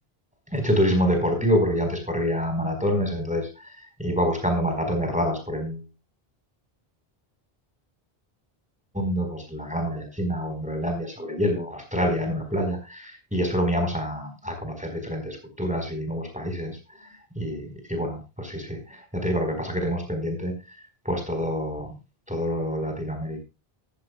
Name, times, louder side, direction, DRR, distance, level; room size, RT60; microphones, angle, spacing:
voice 1, 0.5-5.8 8.9-20.8 21.0-21.9 22.3-23.4, equal, 5° right, 4 dB, 4.5 m, -27 dB
15.0 x 15.0 x 2.3 m, 0.29 s
omnidirectional pair, 1.0 m